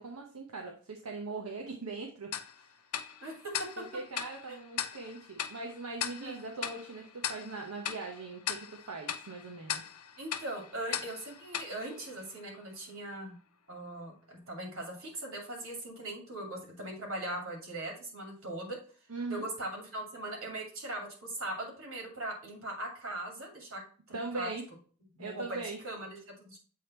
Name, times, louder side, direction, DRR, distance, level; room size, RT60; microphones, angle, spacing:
voice 1, 0.0-2.8 3.8-9.8 19.1-19.4 24.1-24.6 25.2-25.8, right 3 dB, 90° right, 2 dB, 0.9 m, -40 dB
Tick-tock, 2.3-12.8, left 9 dB, 90° left, 0.6 m, -40 dB
voice 2, 3.2-3.7 4.5-4.6 6.2-6.4 10.2-13.4 13.7-18.8 19.3-23.8 24.1-24.5 25.1-26.6, right 1 dB, 70° right, 0 dB, 2.6 m, -40 dB
7.6 x 3.4 x 4.2 m, 0.41 s
head